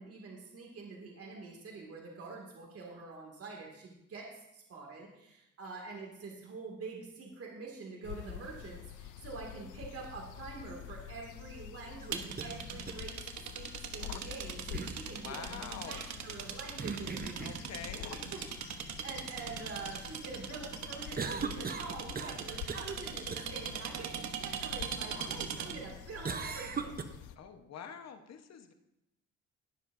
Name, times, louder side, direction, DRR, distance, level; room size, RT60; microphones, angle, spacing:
voice 1, 0.0-13.2 13.6-17.4 18.1-18.7 19.0-27.0, right 4 dB, 50° right, -1 dB, 2.3 m, -46 dB
sound 1, 8.0-27.4, left 11 dB, 80° left, 0.6 m, -47 dB
sound 2, 12.0-12.5 12.9-13.0 14.7-15.0 16.8-17.7 21.2-22.4 22.7-23.0 23.3-23.5 26.3-27.0, right 5 dB, 30° right, 0.8 m, -38 dB
sound 3, 12.1-25.9, right 8 dB, 70° right, 1.0 m, -41 dB
voice 2, 15.0-16.1 17.4-18.2 27.4-28.7, left 7 dB, 60° left, 7 dB, 1.1 m, -46 dB
20.0 x 7.1 x 2.6 m, 0.86 s
cardioid pair, 90°, 30 cm